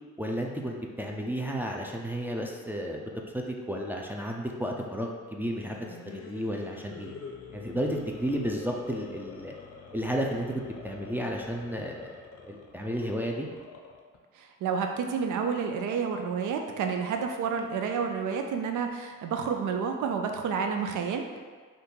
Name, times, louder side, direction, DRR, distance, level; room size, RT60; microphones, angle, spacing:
voice 1, 0.2-7.1 7.5-9.5 9.9-12.1 12.4-13.5, equal, 5° right, -1 dB, 0.4 m, -33 dB
sound 1, 5.4-14.2, left 5 dB, 50° left, 0.5 m, -47 dB
voice 2, 14.4-21.4, right 6 dB, 65° right, 4 dB, 0.5 m, -30 dB
2.6 x 2.5 x 3.7 m, 1.5 s
supercardioid pair, 50°, 33 cm